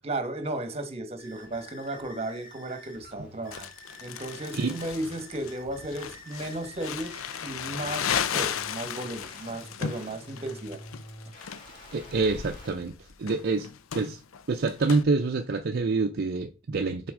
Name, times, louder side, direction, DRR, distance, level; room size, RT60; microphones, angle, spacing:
voice 1, 0.0-3.7 4.0-10.8, right 1 dB, 30° right, 1.2 m, -35 dB
sound 1, 1.2-12.7, left 1 dB, 45° left, 2.1 m, -49 dB
Crumpling crinkling, 3.5-15.0, left 8 dB, 85° left, 0.5 m, -35 dB
voice 2, 11.9-12.9 13.2-13.7 13.9-14.2 14.5-17.1, right 3 dB, 50° right, 0.5 m, -26 dB
6.0 x 4.1 x 4.9 m
head